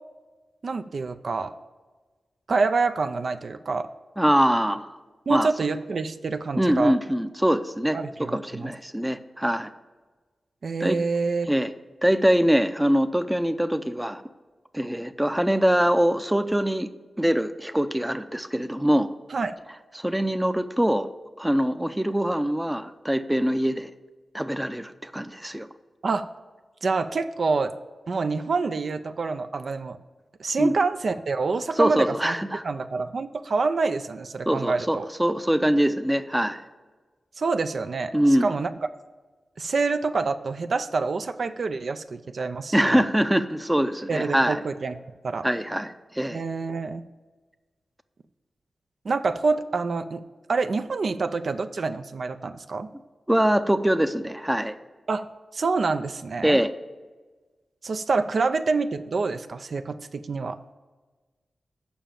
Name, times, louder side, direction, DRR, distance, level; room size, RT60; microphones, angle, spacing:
voice 1, 0.6-1.5 2.5-3.9 5.3-7.0 7.9-8.7 10.6-11.5 19.3-19.5 26.0-26.3 26.8-27.7 28.1-30.0 30.4-32.3 32.6-35.1 37.4-38.7 39.6-43.0 44.1-45.0 45.2-45.5 46.3-47.0 49.0-50.2 50.5-52.9 55.1-55.3 55.5-56.6 57.8-60.6, right 4 dB, 65° right, 9 dB, 0.4 m, -27 dB
voice 2, 4.2-4.9 5.3-5.5 6.6-8.0 8.3-9.7 10.8-11.0 11.5-11.7 12.0-14.2 14.7-16.9 17.2-19.1 19.9-21.1 21.4-23.9 24.3-25.7 30.6-30.7 31.8-32.6 34.5-36.6 38.1-38.6 42.7-44.6 45.4-46.4 53.3-54.7 56.4-56.7, equal, 10° right, 10 dB, 0.5 m, -23 dB
7.0 x 5.6 x 7.3 m, 1.3 s
cardioid pair, 65°, 0 cm